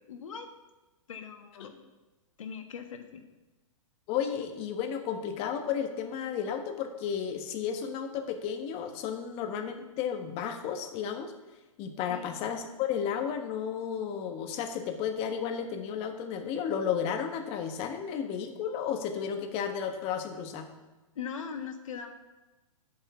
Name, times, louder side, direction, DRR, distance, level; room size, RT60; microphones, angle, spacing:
voice 1, 0.1-0.5 1.1-1.7 2.4-3.2 12.1-12.3 21.1-22.1, left 6 dB, 75° left, 6 dB, 1.4 m, -40 dB
voice 2, 4.1-11.3 11.8-20.7, left 8 dB, 35° left, 5 dB, 1.3 m, -33 dB
10.0 x 5.6 x 7.0 m, 1.1 s
hypercardioid pair, 120°, 17 cm